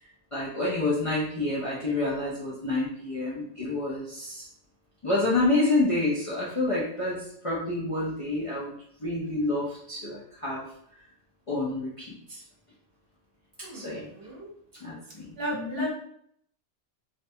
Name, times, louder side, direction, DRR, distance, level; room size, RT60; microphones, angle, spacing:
voice 1, 0.3-4.4 5.0-8.7 9.0-10.6 11.5-12.4 13.7-14.1 14.8-15.9, left 2 dB, 45° left, -7 dB, 0.4 m, -28 dB
voice 2, 13.6-14.5 15.4-15.9, right 1 dB, 60° right, -3 dB, 0.9 m, -35 dB
2.5 x 2.2 x 2.7 m, 0.67 s
omnidirectional pair, 1.2 m